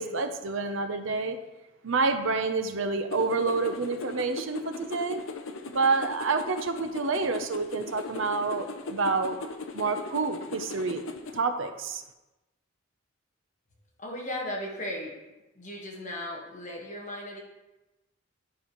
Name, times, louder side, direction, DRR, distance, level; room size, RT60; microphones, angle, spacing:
voice 1, 0.0-1.4 1.8-5.2 5.7-9.4 9.7-11.0 11.3-12.0, right 4 dB, 65° right, 8 dB, 0.7 m, -28 dB
sound 1, 3.1-11.4, left 3 dB, 65° left, 0.6 m, -39 dB
voice 2, 14.0-15.1 15.6-17.4, left 1 dB, 35° left, -1 dB, 1.4 m, -36 dB
11.0 x 5.5 x 3.1 m, 1.0 s
head